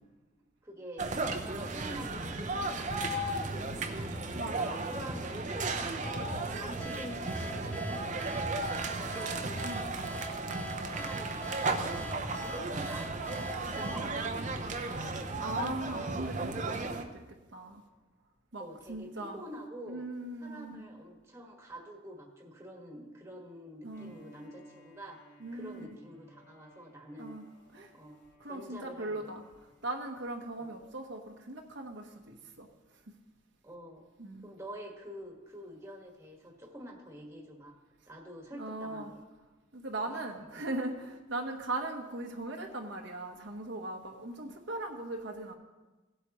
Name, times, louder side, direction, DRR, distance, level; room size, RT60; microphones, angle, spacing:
voice 1, 0.6-4.1 4.4-6.3 6.6-9.4 10.2-10.5 10.9-15.2 18.6-20.0 20.4-27.3 27.9-28.2 28.4-29.3 30.6-30.7 33.6-34.1 34.4-37.7 38.1-39.2 40.0-40.2 40.5-40.6, equal, 15° right, 0 dB, 1.6 m, -47 dB
sound 1, 1.0-17.0, right 2 dB, 40° right, 0.8 m, -35 dB
voice 2, 4.3-4.8 9.6-10.0 13.8-14.1 15.4-17.2 17.5-17.8 18.5-18.6 18.9-19.4 19.9-20.8 23.8-24.1 25.4-25.9 27.2-27.4 27.7-27.9 28.4-29.4 29.8-32.7 34.2-34.4 38.5-39.1 39.7-45.5, right 2 dB, 65° right, 1 dB, 1.1 m, -39 dB
sound 2, 6.8-15.3, right 2 dB, 5° left, 0.8 m, -44 dB
Bowed string instrument, 23.9-29.9, equal, 60° left, 2.8 m, -61 dB
17.5 x 8.1 x 3.0 m, 1.2 s
head